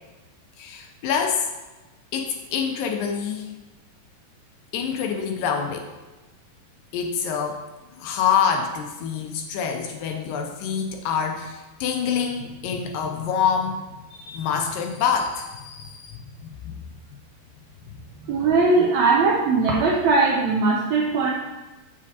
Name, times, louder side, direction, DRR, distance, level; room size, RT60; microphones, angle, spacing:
voice 1, 0.6-1.5 2.1-3.5 4.7-5.9 6.9-7.7 7.9-13.8 14.1-16.7 17.9-18.0, left 7 dB, 80° left, 4 dB, 2.1 m, -26 dB
voice 2, 18.2-21.3, right 3 dB, 80° right, -3 dB, 1.6 m, -20 dB
7.3 x 7.3 x 2.8 m, 1.1 s
omnidirectional pair, 4.2 m